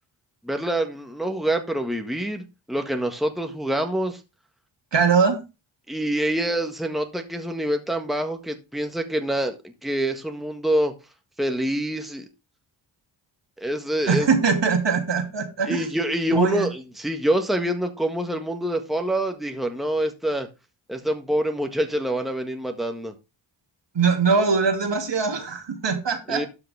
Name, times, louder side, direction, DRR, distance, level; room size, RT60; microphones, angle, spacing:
voice 1, 0.4-4.2 5.9-10.9 11.4-12.2 13.6-14.3 15.7-20.5 20.9-23.1 26.3-26.5, right 1 dB, ahead, 1.8 m, -26 dB
voice 2, 4.9-5.4 14.1-15.9 16.3-16.7 23.9-26.5, right 5 dB, 60° right, 2.7 m, -22 dB
12.5 x 5.8 x 3.6 m
cardioid pair, 55°, 49 cm